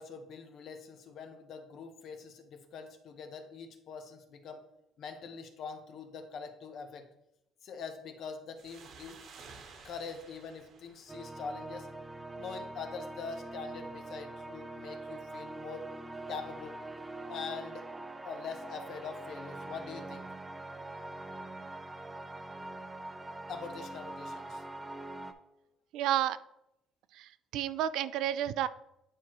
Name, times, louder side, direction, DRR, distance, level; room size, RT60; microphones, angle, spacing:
voice 1, 0.0-4.6 5.0-7.1 7.6-9.2 9.8-11.9 12.3-15.8 16.3-16.8 17.3-17.9 18.2-20.3 23.5-24.7, left 5 dB, 55° left, 7 dB, 0.9 m, -43 dB
sound 1, 8.6-12.0, right 5 dB, 55° right, 1.1 m, -54 dB
sound 2, 11.1-25.3, right 2 dB, 10° right, 0.5 m, -43 dB
voice 2, 25.9-26.4 27.1-28.7, right 11 dB, 75° right, 15 dB, 0.3 m, -31 dB
9.5 x 4.5 x 3.0 m, 0.83 s
cardioid pair, 140°, 0 cm